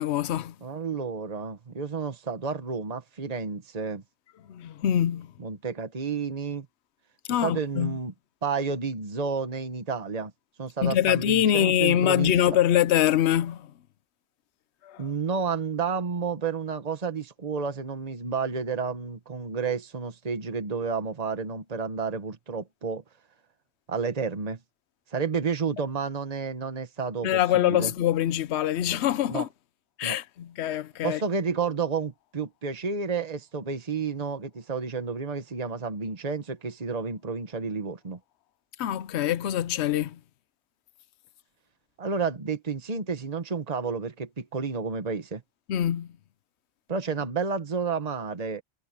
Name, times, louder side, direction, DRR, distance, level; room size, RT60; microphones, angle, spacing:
voice 1, 0.0-0.6 4.5-5.3 7.3-8.0 10.8-13.7 14.8-15.0 27.2-29.5 30.0-31.2 38.8-40.2 45.7-46.1, left 11 dB, 70° left, 0.9 m, -24 dB
voice 2, 0.6-4.0 5.4-6.7 7.4-8.1 8.4-10.3 10.6-12.6 15.0-23.0 23.9-24.6 25.1-27.9 29.3-29.5 30.0-30.2 31.0-38.2 42.0-45.4 46.9-48.6, right 5 dB, 35° right, 1.4 m, -31 dB
omnidirectional pair, 1.2 m